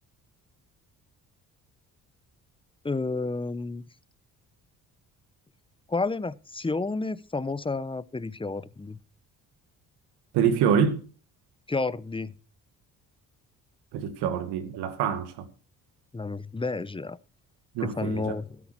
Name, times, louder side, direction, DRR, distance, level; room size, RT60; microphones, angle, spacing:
voice 1, 2.8-3.8 5.9-9.0 11.7-12.4 16.1-17.2 17.8-18.6, left 3 dB, 15° left, 0.8 m, -30 dB
voice 2, 10.3-11.0 13.9-15.3 17.8-18.3, right 7 dB, 85° right, 2.0 m, -25 dB
13.0 x 10.0 x 4.5 m
supercardioid pair, 60°, 40 cm